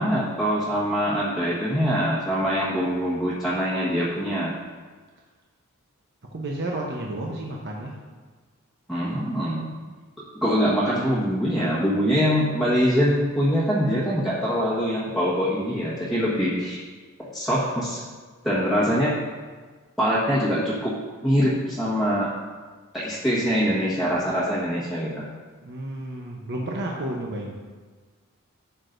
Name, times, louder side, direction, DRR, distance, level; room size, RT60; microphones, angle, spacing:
voice 1, 0.0-4.6 8.9-9.6 10.3-16.8 17.3-18.0 18.4-19.1 20.0-20.9 21.2-22.3 22.9-25.3, equal, ahead, -10 dB, 1.4 m, -23 dB
voice 2, 6.3-7.9 25.6-27.6, right 1 dB, 50° right, -1 dB, 0.9 m, -31 dB
12.0 x 8.1 x 2.6 m, 1.4 s
head